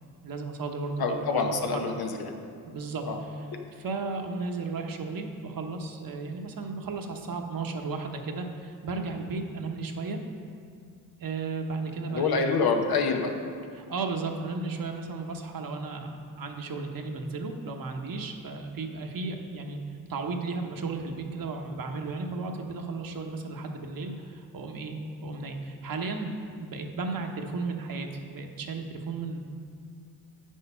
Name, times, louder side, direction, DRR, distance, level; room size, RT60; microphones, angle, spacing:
voice 1, 0.2-1.9 2.6-10.2 11.2-12.4 13.7-19.8 20.1-25.0 25.2-29.4, right 3 dB, 60° right, 3 dB, 1.1 m, -34 dB
voice 2, 1.0-2.3 3.1-3.2 12.1-13.3, left 4 dB, 75° left, 3 dB, 1.1 m, -26 dB
8.2 x 6.5 x 5.5 m, 2.2 s
cardioid pair, 65°, 38 cm